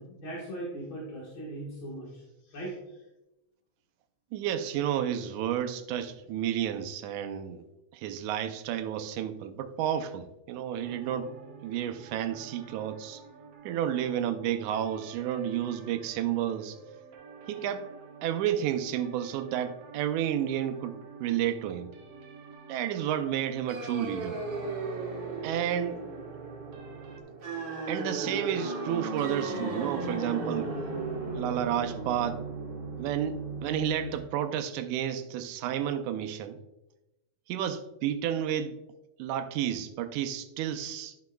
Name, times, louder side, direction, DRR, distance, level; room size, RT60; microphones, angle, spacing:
voice 1, 0.0-2.7, right 1 dB, 50° left, -5 dB, 1.9 m, -39 dB
voice 2, 4.3-7.6 7.9-11.3 11.6-13.2 13.6-16.8 17.5-17.9 18.2-21.9 22.7-24.4 25.4-26.0 27.9-30.8 31.3-32.4 33.0-36.6 37.5-38.8 39.2-41.1, right 10 dB, 85° right, 8 dB, 2.0 m, -31 dB
sound 1, 10.8-27.2, right 5 dB, 65° right, 1.7 m, -50 dB
sound 2, 23.7-34.2, right 3 dB, 50° right, 1.8 m, -36 dB
11.5 x 6.2 x 2.3 m, 0.97 s
omnidirectional pair, 3.5 m